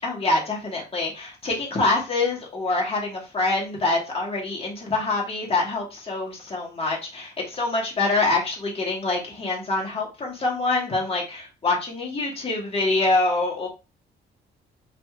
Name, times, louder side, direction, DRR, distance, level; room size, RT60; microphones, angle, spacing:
voice 1, 0.0-13.7, left 3 dB, 30° left, -2 dB, 1.8 m, -25 dB
4.0 x 2.9 x 2.5 m, 0.29 s
cardioid pair, 90°, 20 cm